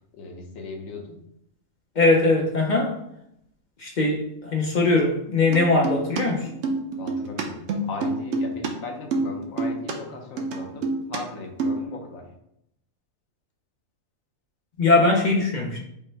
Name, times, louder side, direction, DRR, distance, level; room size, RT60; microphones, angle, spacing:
voice 1, 0.1-1.2 7.0-12.3, left 3 dB, 70° left, 2 dB, 1.2 m, -38 dB
voice 2, 1.9-3.0 3.8-6.5 14.8-15.8, left 2 dB, 55° left, 0 dB, 0.5 m, -21 dB
sound 1, 5.5-6.2 6.5-8.7 9.0-9.9 10.4-11.2 11.4-11.8, right 3 dB, 60° right, 0.9 m, -27 dB
5.5 x 2.1 x 4.4 m, 0.77 s
omnidirectional pair, 1.5 m